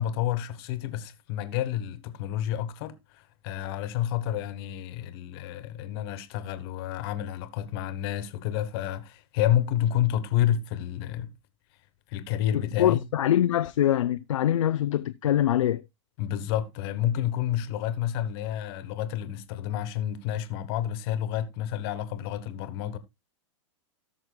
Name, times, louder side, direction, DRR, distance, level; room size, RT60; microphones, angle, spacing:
voice 1, 0.0-11.3 12.1-13.0 16.2-23.0, left 11 dB, 50° left, 1.4 m, -29 dB
voice 2, 12.8-15.8, left 11 dB, 85° left, 0.5 m, -24 dB
18.0 x 6.2 x 2.3 m
hypercardioid pair, 130°, 16 cm